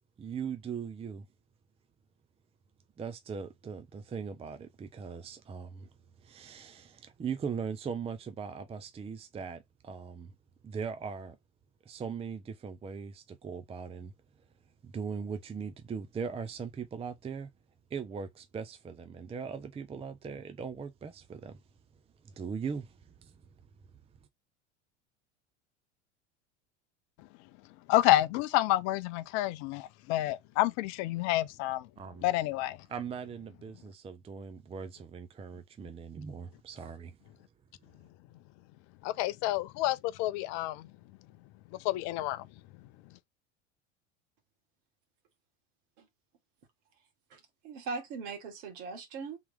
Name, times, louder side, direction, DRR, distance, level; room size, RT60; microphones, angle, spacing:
voice 1, 0.2-1.3 3.0-5.9 6.2-10.3 10.6-11.4 11.9-14.1 14.8-17.5 17.9-21.6 22.3-22.9 23.2-23.3 32.0-32.3 32.9-37.2, right 6 dB, 15° right, 0.6 m, -39 dB
voice 2, 27.9-31.9 32.2-32.8 39.0-40.9 41.8-42.5, left 15 dB, 50° left, 0.6 m, -29 dB
voice 3, 47.3-49.4, right 4 dB, 60° right, 1.9 m, -40 dB
3.6 x 2.8 x 3.5 m
hypercardioid pair, 85°, 35 cm